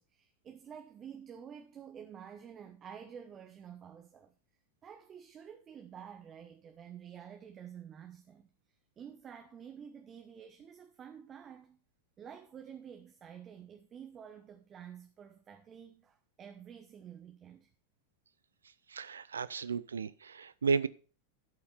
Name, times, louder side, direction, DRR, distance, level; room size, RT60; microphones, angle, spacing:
voice 1, 0.0-4.3 4.8-8.5 9.0-11.8 12.2-17.7, right 8 dB, 25° right, 1.0 m, -50 dB
voice 2, 18.9-20.9, right 5 dB, 70° right, 0.5 m, -33 dB
12.0 x 5.7 x 5.8 m
figure-of-eight pair, 90°, 0 cm